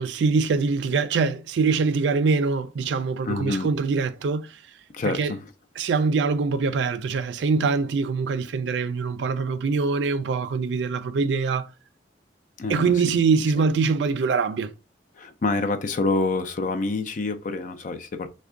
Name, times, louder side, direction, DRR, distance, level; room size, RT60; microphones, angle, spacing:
voice 1, 0.0-4.6 5.0-5.3 5.8-11.7 12.7-14.7, right 4 dB, 70° right, 0.4 m, -23 dB
voice 2, 3.2-3.7 4.9-5.4 12.6-12.9 15.2-18.3, left 3 dB, 45° left, 0.4 m, -27 dB
3.4 x 2.2 x 3.6 m
head